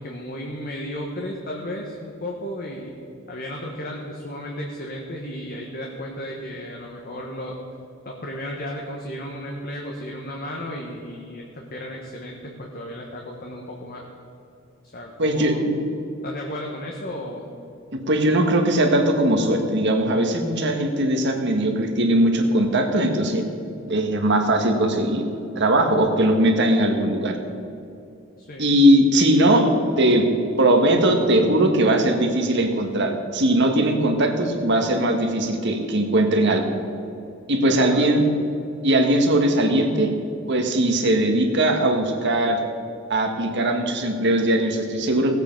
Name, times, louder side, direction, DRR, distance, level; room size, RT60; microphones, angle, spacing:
voice 1, 0.0-2.9 3.3-7.6 8.0-14.1 14.9-15.6 16.2-17.5 28.4-28.8 37.6-38.1, equal, 50° left, 0 dB, 1.3 m, -34 dB
voice 2, 15.2-15.7 17.9-23.4 23.9-25.2 25.5-27.3 28.6-30.3 30.6-36.6 37.5-38.2 38.8-40.1 40.5-42.6 43.1-45.3, right 1 dB, 60° right, 4 dB, 1.6 m, -20 dB
18.0 x 8.3 x 5.4 m, 2.7 s
head